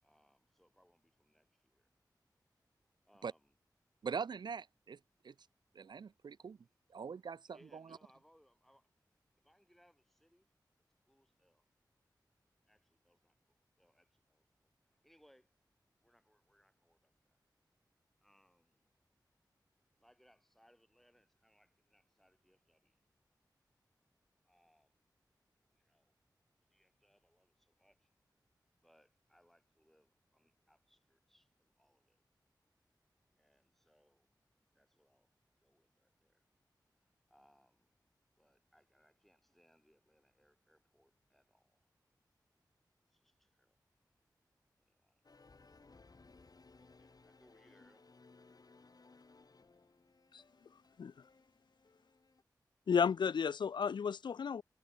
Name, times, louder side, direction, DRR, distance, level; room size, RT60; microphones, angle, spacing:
voice 1, 0.0-1.9 3.0-3.5 6.0-6.4 6.9-7.0 7.5-8.9 9.4-10.5 11.0-11.6 12.7-13.4 13.8-15.5 16.0-17.4 18.2-18.8 19.9-23.0 24.4-25.0 25.7-26.2 26.7-28.1 28.8-32.2 33.4-34.3 34.7-35.3 35.6-36.5 37.3-37.9 38.4-41.9 43.1-43.8 44.8-45.2 46.8-48.1, equal, 5° left, 4.5 m, -71 dB
voice 2, 4.0-5.0 5.2-5.3 5.7-6.6 6.9-7.8, right 6 dB, 70° right, 0.4 m, -42 dB
sound 1, 45.2-52.4, left 3 dB, 55° left, 1.9 m, -63 dB
voice 3, 52.9-54.6, left 6 dB, 80° left, 0.4 m, -32 dB
cardioid pair, 45°, 8 cm